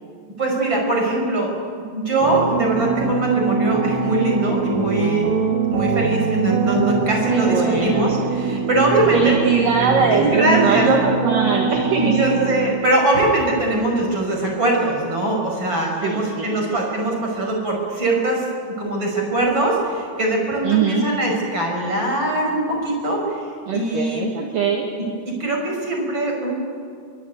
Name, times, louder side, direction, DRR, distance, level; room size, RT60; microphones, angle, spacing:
voice 1, 0.4-1.5 1.9-5.3 5.7-9.4 10.1-10.9 11.9-23.5 23.7-24.3 25.4-26.5, right 2 dB, 25° right, 0 dB, 6.4 m, -21 dB
sound 1, 2.2-12.7, right 5 dB, 80° right, 4.7 m, -23 dB
voice 2, 7.3-8.1 9.1-12.3 16.0-16.8 20.6-21.1 23.7-24.9, right 5 dB, 55° right, 1 dB, 2.9 m, -21 dB
24.0 x 23.5 x 9.6 m, 2.3 s
omnidirectional pair, 5.7 m